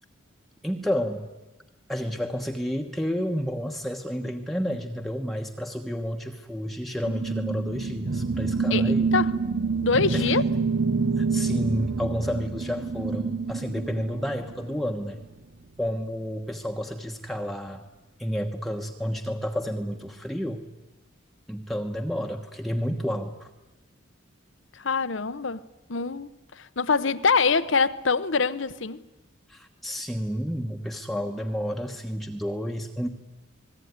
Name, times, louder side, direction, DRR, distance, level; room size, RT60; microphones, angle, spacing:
voice 1, 0.6-1.2 1.9-9.2 10.1-10.3 11.2-15.2 15.8-17.8 18.2-20.7 21.5-23.5 29.5-33.1, equal, ahead, 1.2 m, -30 dB
sound 1, 7.0-14.8, right 4 dB, 80° right, 0.9 m, -27 dB
voice 2, 8.7-9.3 9.8-10.4 24.7-25.6 25.9-29.0, left 4 dB, 75° left, 0.9 m, -24 dB
29.5 x 20.5 x 9.6 m
head